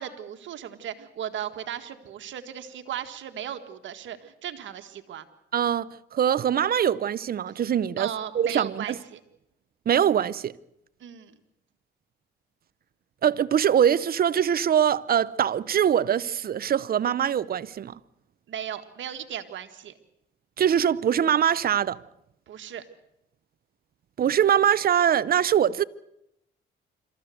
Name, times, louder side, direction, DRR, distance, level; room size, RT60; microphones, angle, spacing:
voice 1, 0.0-5.3 8.0-9.2 11.0-11.4 18.5-19.9 22.5-22.8, right 10 dB, 70° right, 1.8 m, -36 dB
voice 2, 5.5-8.1 8.3-9.0 9.9-10.5 13.2-17.9 20.6-22.0 24.2-25.8, right 9 dB, 50° right, 0.7 m, -23 dB
26.5 x 14.0 x 7.9 m
cardioid pair, 90°, 20 cm